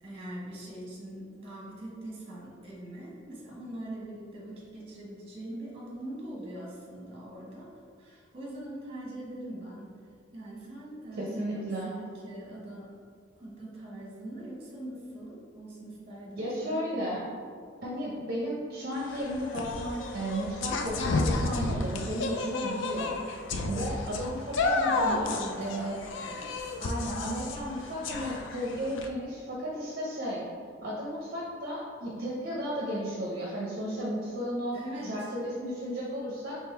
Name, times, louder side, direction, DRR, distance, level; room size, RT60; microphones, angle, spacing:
voice 1, 0.0-7.7 8.0-9.9 10.3-13.0 13.4-16.8 24.7-26.8 34.7-35.3, right 1 dB, 30° right, -4 dB, 1.2 m, -42 dB
voice 2, 11.2-12.0 16.4-17.3 17.8-23.2 23.7-26.0 26.8-30.4 30.8-34.8 35.0-36.6, equal, 50° right, -5 dB, 0.6 m, -34 dB
sound 1, 18.9-29.1, left 3 dB, 65° left, 0.4 m, -32 dB
3.6 x 3.2 x 4.3 m, 2.2 s
head